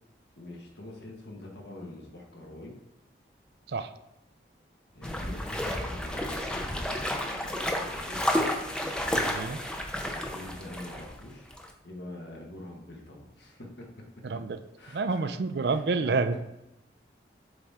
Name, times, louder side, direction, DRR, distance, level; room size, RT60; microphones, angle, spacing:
voice 1, 0.4-2.7 4.9-8.3 10.0-11.5 11.8-13.9 14.3-14.4 14.8-15.3 15.6-16.3, left 1 dB, 75° left, 0 dB, 1.5 m, -45 dB
sound 1, 5.0-11.2 11.5-11.7, left 1 dB, 5° left, 0.5 m, -31 dB
voice 2, 9.1-9.6 14.2-14.6 14.9-16.4, right 4 dB, 65° right, 11 dB, 0.4 m, -28 dB
8.0 x 3.7 x 4.3 m, 0.89 s
head